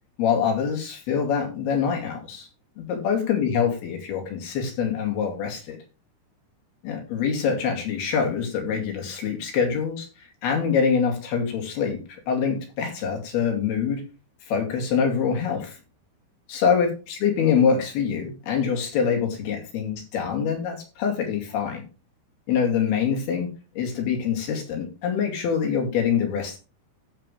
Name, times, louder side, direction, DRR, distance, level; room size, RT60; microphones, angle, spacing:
voice 1, 0.2-2.5 2.8-5.8 6.8-10.1 10.4-12.0 12.3-14.0 14.5-15.8 16.5-21.8 22.5-23.5 23.8-26.6, left 7 dB, 75° left, 2 dB, 4.5 m, -25 dB
15.5 x 5.5 x 3.3 m, 0.31 s
omnidirectional pair, 4.6 m